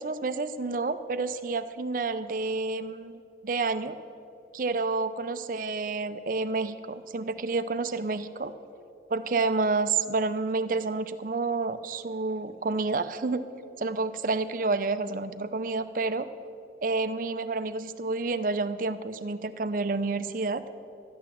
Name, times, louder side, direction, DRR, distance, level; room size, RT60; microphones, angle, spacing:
voice 1, 0.0-3.1 3.4-4.0 4.5-8.5 9.1-13.5 13.8-16.3 16.8-20.6, right 3 dB, 50° right, 11 dB, 0.5 m, -29 dB
13.0 x 9.3 x 7.5 m, 2.6 s
head